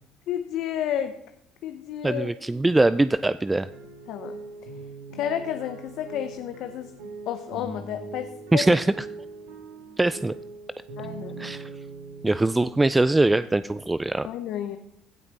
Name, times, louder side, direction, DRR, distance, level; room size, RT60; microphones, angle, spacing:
voice 1, 0.3-1.1 1.6-2.3 4.1-4.4 5.1-6.9 7.3-8.6 11.0-11.4 14.2-14.8, left 10 dB, 65° left, 8 dB, 0.7 m, -31 dB
voice 2, 2.0-3.7 8.5-8.9 10.0-10.3 11.4-11.7 12.2-14.3, right 2 dB, 15° right, 15 dB, 0.3 m, -22 dB
sound 1, 3.6-13.0, right 3 dB, 80° right, 2.4 m, -41 dB
16.0 x 6.0 x 4.1 m, 0.77 s
supercardioid pair, 75°, 0 cm